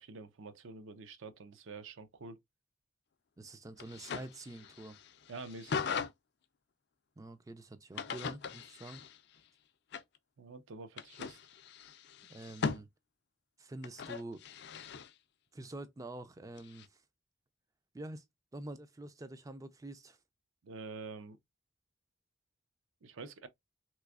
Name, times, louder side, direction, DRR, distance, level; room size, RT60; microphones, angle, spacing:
voice 1, 0.0-2.4 5.3-5.9 10.4-11.4 20.6-21.4 23.0-23.5, right 3 dB, 75° right, 0.5 m, -47 dB
voice 2, 3.4-5.0 7.2-9.0 12.3-12.9 13.6-14.4 15.5-17.0 17.9-18.2 18.5-20.2, right 2 dB, 15° right, 0.3 m, -46 dB
sound 1, 3.8-6.1 7.9-9.4 9.9-10.2 11.0-12.8 13.8-15.1 16.6-16.9, left 6 dB, 55° left, 0.4 m, -40 dB
3.3 x 3.0 x 2.3 m
head